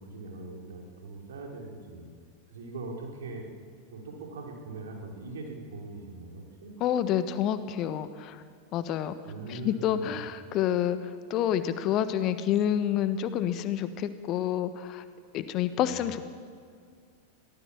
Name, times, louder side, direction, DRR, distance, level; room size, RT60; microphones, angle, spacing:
voice 1, 0.0-2.1 2.5-3.5 3.9-6.7 9.3-10.2 15.8-16.0, right 3 dB, 60° right, 1 dB, 4.5 m, -41 dB
voice 2, 6.8-8.4 8.7-9.1 9.5-15.0 15.3-16.3, left 10 dB, 35° left, 12 dB, 1.2 m, -28 dB
23.5 x 18.0 x 7.2 m, 2.1 s
figure-of-eight pair, 90°, 0 cm